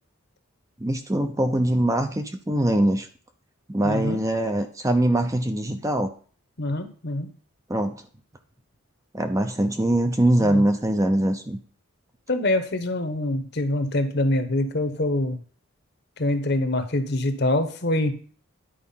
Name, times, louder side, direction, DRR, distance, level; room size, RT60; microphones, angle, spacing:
voice 1, 0.8-3.1 3.7-6.1 7.7-8.0 9.1-11.6, right 1 dB, 15° right, 7 dB, 0.6 m, -22 dB
voice 2, 3.8-4.2 6.6-7.3 10.4-10.6 12.3-15.4 16.2-18.2, left 1 dB, 50° left, 9 dB, 1.0 m, -25 dB
10.5 x 4.7 x 5.7 m, 0.42 s
head